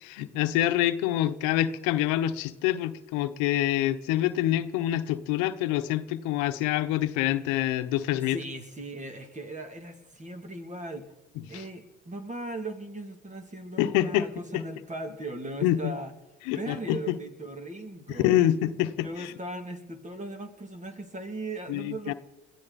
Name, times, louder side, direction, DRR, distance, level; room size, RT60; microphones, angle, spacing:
voice 1, 0.0-8.4 11.5-11.6 13.8-14.3 14.5-14.6 15.6-15.9 16.5-17.2 18.2-19.3 21.7-22.1, left 13 dB, 85° left, 10 dB, 1.0 m, -26 dB
voice 2, 8.2-11.1 11.5-16.1 16.5-18.3 19.0-22.1, right 1 dB, 25° right, 6 dB, 2.8 m, -38 dB
22.0 x 14.0 x 4.2 m, 1.1 s
supercardioid pair, 80°, 30 cm